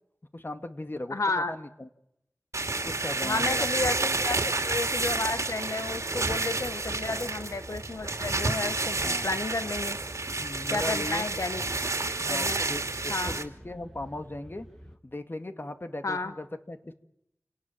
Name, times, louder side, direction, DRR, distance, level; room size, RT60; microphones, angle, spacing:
voice 1, 0.3-1.2 1.5-1.9 2.8-3.7 9.0-9.3 10.4-11.4 12.2-14.7 15.0-16.9, left 1 dB, 45° left, 8 dB, 2.2 m, -38 dB
voice 2, 1.1-1.5 3.2-10.0 10.7-11.6 12.3-12.6 13.1-13.3 16.0-16.3, left 3 dB, 80° left, 9 dB, 1.1 m, -32 dB
sound 1, 2.5-13.4, right 3 dB, 75° right, 2.7 m, -30 dB
sound 2, 6.1-15.0, equal, 5° left, 2.4 m, -48 dB
29.0 x 18.5 x 7.6 m, 0.79 s
wide cardioid pair, 45°, 5 cm